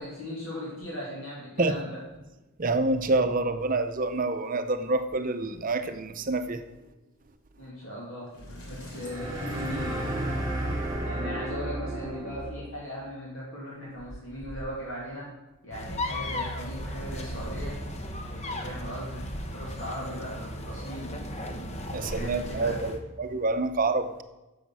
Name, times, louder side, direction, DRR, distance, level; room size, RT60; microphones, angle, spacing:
voice 1, 0.0-2.0 7.6-8.3 8.7-10.2 11.0-15.3 15.6-17.8 18.2-21.1 21.8-22.8, equal, 65° left, 2.6 m, -38 dB
voice 2, 2.6-6.6 21.9-24.2, right 2 dB, 40° right, 0.7 m, -27 dB
Sliding door, 7.8-7.9 8.3-10.5, left 1 dB, 85° left, 3.0 m, -46 dB
sound 1, 9.0-12.7, right 1 dB, 20° right, 3.2 m, -32 dB
sound 2, 15.7-23.0, left 1 dB, 30° left, 1.0 m, -35 dB
9.8 x 7.2 x 6.2 m
head